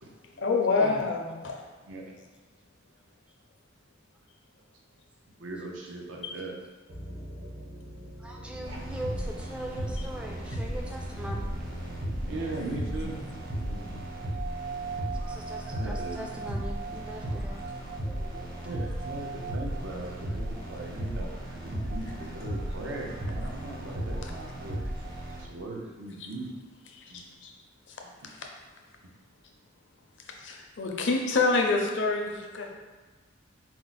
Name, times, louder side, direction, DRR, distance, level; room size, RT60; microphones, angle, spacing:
voice 1, 0.4-1.6 6.2-6.3 12.2-13.1 24.2-24.3 26.9-27.5 27.9-28.0 28.2-28.5 30.4-32.7, left 3 dB, 65° left, 1 dB, 0.6 m, -28 dB
voice 2, 5.4-6.5 8.4-8.8 12.3-13.2 13.6-14.0 15.7-16.2 18.6-21.3 21.6-24.9 25.4-26.5 27.1-27.2, right 2 dB, 85° right, 0 dB, 0.7 m, -39 dB
sound 1, 6.9-16.2, equal, 65° right, 1.3 m, -44 dB
voice 3, 8.2-11.5 15.3-17.7 21.4-21.6 24.3-24.4 25.3-25.4 27.2-27.3, right 1 dB, 5° right, 0 dB, 0.3 m, -41 dB
sound 2, 8.6-25.4, right 1 dB, 50° right, 0.8 m, -35 dB
4.4 x 2.1 x 3.9 m, 1.3 s
head